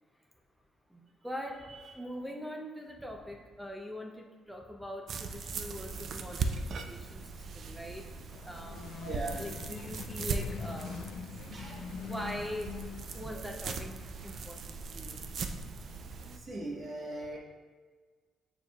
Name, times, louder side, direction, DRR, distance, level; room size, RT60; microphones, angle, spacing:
voice 1, 0.9-1.6 2.0-8.0 8.4-8.9 9.4-11.1 11.9-12.7 13.1-15.2, equal, 5° right, 2 dB, 0.6 m, -42 dB
sound 1, 5.1-16.4, right 4 dB, 60° right, 0.5 m, -39 dB
sound 2, 8.2-13.5, left 7 dB, 70° left, 0.3 m, -44 dB
voice 2, 8.6-9.5 11.5-11.9 16.5-17.4, right 2 dB, 45° right, -1 dB, 1.2 m, -40 dB
8.8 x 4.6 x 2.4 m, 1.5 s
cardioid pair, 90°, 0 cm